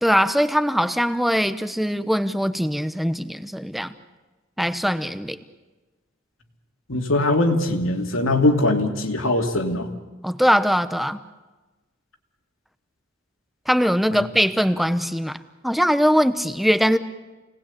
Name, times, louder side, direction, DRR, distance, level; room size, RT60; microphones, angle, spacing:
voice 1, 0.0-3.9 4.6-5.4 10.2-11.2 13.7-15.4 15.6-17.0, equal, ahead, 11 dB, 0.9 m, -21 dB
voice 2, 6.9-9.9 14.1-14.2, left 2 dB, 90° left, 4 dB, 2.7 m, -21 dB
28.5 x 19.5 x 8.6 m, 1.2 s
head